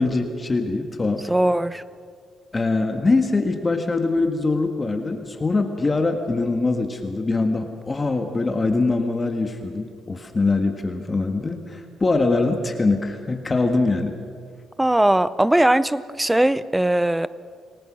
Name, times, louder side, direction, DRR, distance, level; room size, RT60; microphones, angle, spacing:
voice 1, 0.0-1.3 2.5-14.1, left 3 dB, 25° left, 5 dB, 1.6 m, -23 dB
voice 2, 1.3-1.8 14.8-17.3, right 1 dB, 10° right, 16 dB, 0.7 m, -19 dB
26.5 x 19.0 x 6.3 m, 2.1 s
cardioid pair, 90°, 0 cm